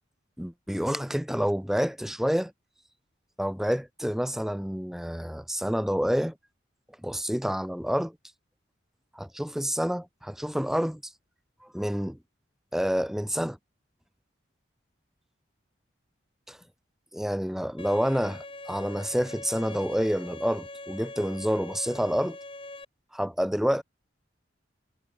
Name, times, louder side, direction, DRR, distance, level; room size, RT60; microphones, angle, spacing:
voice 1, 0.4-2.5 3.4-6.3 7.0-8.2 9.1-11.0 11.7-12.2 12.7-13.6 16.5-16.6 17.1-22.4 23.1-23.8, equal, ahead, 0.5 m, -28 dB
Bowed string instrument, 17.8-22.8, left 2 dB, 25° left, 3.5 m, -42 dB
head